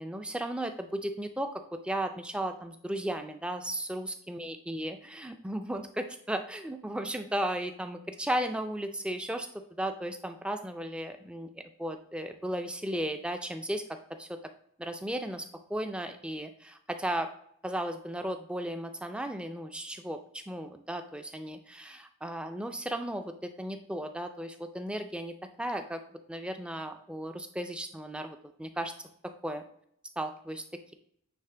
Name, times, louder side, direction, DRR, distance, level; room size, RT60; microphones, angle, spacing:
voice 1, 0.0-13.8 14.2-14.3 14.8-17.3 17.6-26.0 26.3-28.9 29.2-29.6 30.2-30.6, right 1 dB, 5° right, 7 dB, 0.4 m, -35 dB
9.3 x 3.3 x 3.3 m, 0.70 s
head